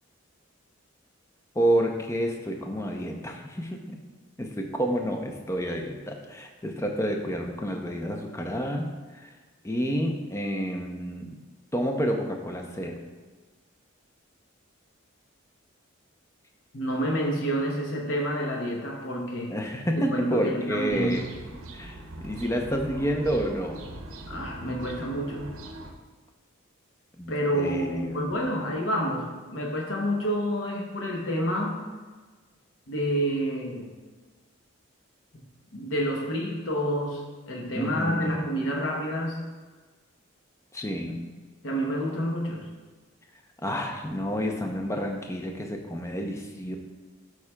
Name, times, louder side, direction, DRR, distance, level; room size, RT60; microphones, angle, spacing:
voice 1, 1.5-4.0 4.4-9.4 9.6-11.3 11.7-13.0 19.5-21.2 21.7-23.8 27.2-28.4 37.8-38.4 40.7-41.2 43.6-46.8, equal, 15° left, 2 dB, 0.5 m, -29 dB
voice 2, 16.7-19.5 20.0-21.3 24.3-25.5 27.3-31.8 32.9-34.0 35.3-35.4 35.7-39.5 41.6-42.7, equal, 60° left, -1 dB, 0.8 m, -29 dB
sound 1, 20.9-25.9, right 1 dB, 75° right, 0.7 m, -42 dB
11.5 x 4.8 x 2.2 m, 1.3 s
head